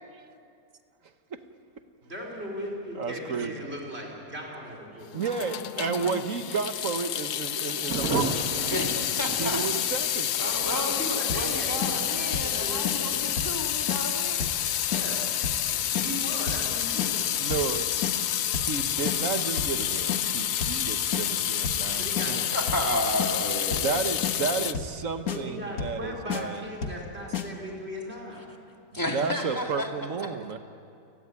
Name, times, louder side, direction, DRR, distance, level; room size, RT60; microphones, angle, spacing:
voice 1, 2.1-5.1 5.9-6.0 10.4-13.2 14.9-15.3 15.9-17.2 21.9-22.8 25.3-28.4, equal, 40° right, -1 dB, 5.2 m, -38 dB
voice 2, 3.0-3.7 5.1-8.5 9.4-10.5 17.4-17.9 18.5-22.5 23.8-26.6 29.1-30.6, right 5 dB, 60° right, 9 dB, 1.5 m, -32 dB
Water tap faucet / Sink (filling or washing) / Drip, 5.1-24.7, left 11 dB, 90° left, 1.3 m, -29 dB
Thunder, 7.9-24.0 24.3-24.4 24.7-24.8 25.1-25.5, right 3 dB, 75° right, 2.4 m, -40 dB
voice 3, 8.7-9.9 10.4-14.5 22.5-24.0 28.9-29.9 30.2-30.3, left 1 dB, 10° left, 1 dB, 2.5 m, -32 dB
sound 1, 11.3-11.5 11.8-11.9 12.3-12.6 12.9-13.0 13.4-13.6 13.9-14.0 14.4-14.6 14.9-15.0 15.4-15.7 16.0-16.1 16.5-16.7 17.0-17.1 17.5-17.7 18.0-18.1 18.5-18.8 19.1-19.2 19.6-19.8 20.1-20.2 20.6-20.8 21.1-21.3 21.6-21.9 22.2-22.3 22.7-22.9 23.2-23.3 23.7-23.9 24.2-24.4 24.7-25.0 25.3-25.4 25.8-26.0 26.3-26.4 26.8-27.0 27.3-27.5, left 7 dB, 65° left, 1.9 m, -31 dB
30.0 x 17.5 x 9.7 m, 2.5 s
omnidirectional pair, 1.6 m